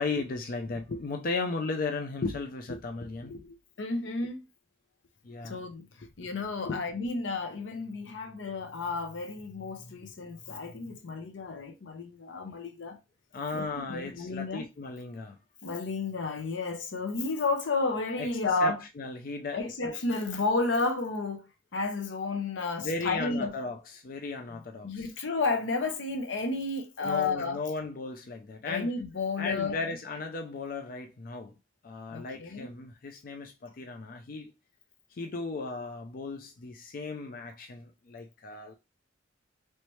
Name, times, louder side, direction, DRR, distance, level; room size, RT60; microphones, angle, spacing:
voice 1, 0.0-3.6 5.2-5.6 6.0-6.1 6.7-6.8 13.3-15.4 18.2-18.3 18.6-20.0 22.8-25.1 27.0-28.9 29.4-31.5 31.8-34.5 35.1-38.7, left 3 dB, 50° left, 0.4 m, -36 dB
voice 2, 3.8-4.4 5.4-5.9 6.2-13.0 13.5-14.7 15.6-18.8 19.5-21.5 21.7-23.5 24.8-27.6 28.7-29.8 32.1-32.7, left 3 dB, 85° left, 0.7 m, -32 dB
3.2 x 3.0 x 3.0 m
head